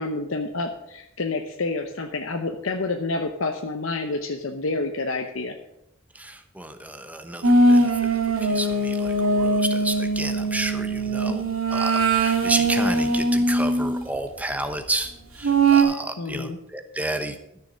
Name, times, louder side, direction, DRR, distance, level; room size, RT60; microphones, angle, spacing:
voice 1, 0.0-5.5 16.2-16.6, left 3 dB, 70° left, 4 dB, 0.8 m, -28 dB
voice 2, 6.1-11.4 11.7-17.4, right 2 dB, 5° right, 8 dB, 0.9 m, -31 dB
sound 1, 7.4-14.0 15.4-15.8, right 2 dB, 85° right, 1.9 m, -21 dB
13.0 x 6.8 x 6.3 m, 0.83 s
head